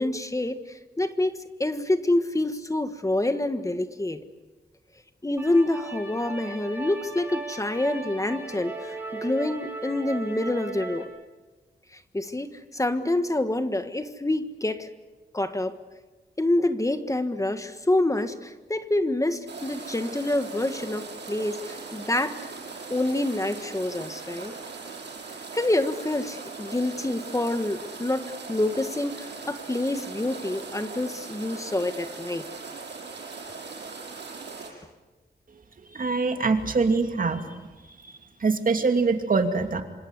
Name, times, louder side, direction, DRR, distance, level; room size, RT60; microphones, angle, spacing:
voice 1, 0.0-4.2 5.2-11.1 11.9-14.9 15.3-15.7 16.4-22.5 22.9-24.5 25.5-32.4, left 1 dB, 20° left, 9 dB, 1.5 m, -27 dB
sound 1, 5.4-11.0, right 3 dB, 10° right, 7.2 m, -37 dB
sound 2, 19.5-34.7, right 4 dB, 80° right, 7.4 m, -40 dB
voice 2, 35.9-37.6 38.0-39.8, right 4 dB, 50° right, 6 dB, 2.7 m, -24 dB
26.5 x 26.0 x 8.3 m, 1.2 s
wide cardioid pair, 105°, 18 cm